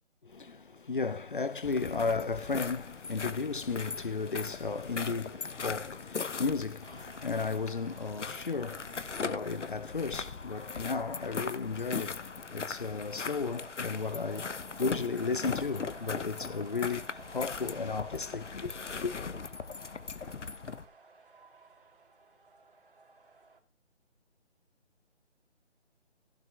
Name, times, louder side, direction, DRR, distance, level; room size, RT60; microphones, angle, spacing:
voice 1, 0.2-19.1, left 4 dB, 45° left, 0.7 m, -34 dB
sound 1, 1.6-20.9, left 5 dB, 90° left, 1.1 m, -39 dB
sound 2, 6.8-23.6, right 4 dB, 50° right, 2.6 m, -55 dB
15.5 x 5.5 x 4.6 m
hypercardioid pair, 175°, 35 cm